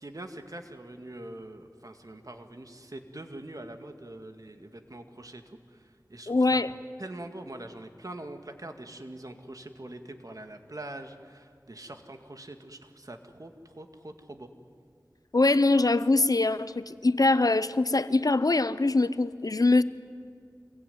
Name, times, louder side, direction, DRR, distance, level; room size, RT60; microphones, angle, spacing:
voice 1, 0.0-6.6 7.0-14.5, right 1 dB, 60° right, 6 dB, 2.1 m, -43 dB
voice 2, 6.3-6.7 15.3-19.8, left 2 dB, 65° left, 14 dB, 0.8 m, -23 dB
26.0 x 22.0 x 9.5 m, 2.2 s
wide cardioid pair, 40°, 7 cm